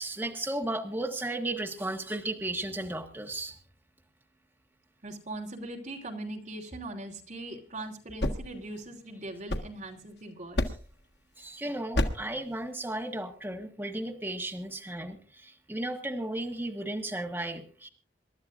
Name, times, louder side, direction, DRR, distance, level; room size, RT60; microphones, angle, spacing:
voice 1, 0.0-3.6 11.4-17.9, right 1 dB, 10° right, 2 dB, 1.4 m, -34 dB
voice 2, 5.0-10.7, right 2 dB, 45° right, 0 dB, 3.0 m, -40 dB
sound 1, 7.9-10.1 10.5-11.0 11.9-12.4, left 1 dB, 75° left, 1.5 m, -32 dB
27.5 x 12.5 x 2.5 m, 0.39 s
head